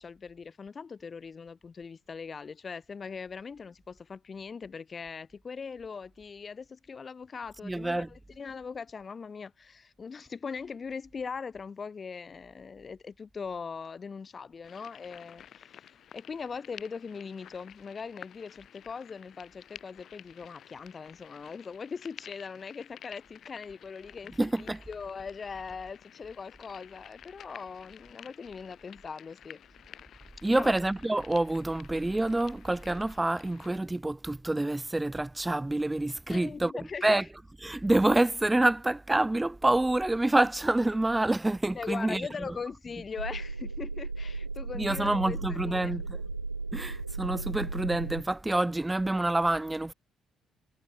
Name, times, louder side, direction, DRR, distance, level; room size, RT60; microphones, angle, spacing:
voice 1, 0.0-15.8 16.1-29.6 30.5-30.7 32.9-33.0 36.3-37.3 41.7-46.0 46.7-46.8, left 5 dB, 35° left, 3.3 m, -41 dB
voice 2, 7.6-8.1 24.4-24.8 30.4-36.7 37.0-37.2 37.6-42.2 44.7-46.0 46.7-49.9, right 2 dB, 15° right, 1.0 m, -27 dB
Orcas Island Ant Hill, 14.6-33.8, left 10 dB, 50° left, 2.7 m, -52 dB
sound 1, 43.2-48.2, right 3 dB, 85° right, 0.3 m, -36 dB
figure-of-eight pair, 45°, 0 cm